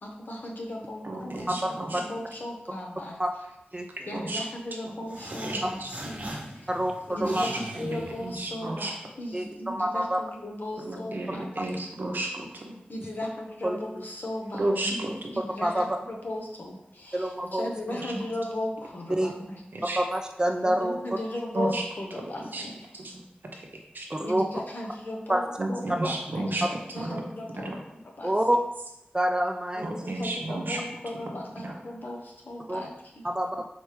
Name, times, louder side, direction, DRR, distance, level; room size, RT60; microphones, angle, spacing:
voice 1, 0.0-1.5 2.0-3.2 4.1-6.7 7.1-11.9 12.9-19.6 20.6-22.9 24.2-27.7 28.2-28.3 29.8-33.2, left 1 dB, 60° left, 0 dB, 0.8 m, -37 dB
voice 2, 1.0-2.0 4.0-4.4 5.4-5.9 7.2-8.9 10.8-12.8 14.6-15.3 17.9-18.1 19.7-20.0 21.5-21.8 22.2-22.3 22.5-22.7 23.5-24.1 25.6-27.2 27.6-27.8 29.8-30.8 31.6-31.7, right 2 dB, 65° right, 1 dB, 0.7 m, -32 dB
sound 1, 5.0-8.8, right 1 dB, 40° right, 0.9 m, -41 dB
voice 3, 6.7-7.4 9.3-10.2 11.6-11.7 13.6-13.8 15.6-15.9 17.1-17.7 19.1-19.3 20.0-21.0 24.1-24.5 25.3-25.4 28.2-28.6 29.1-29.9 32.7-32.8 33.2-33.7, right 1 dB, 20° right, 4 dB, 0.3 m, -27 dB
4.1 x 3.3 x 3.2 m, 0.88 s
wide cardioid pair, 65°, 4 cm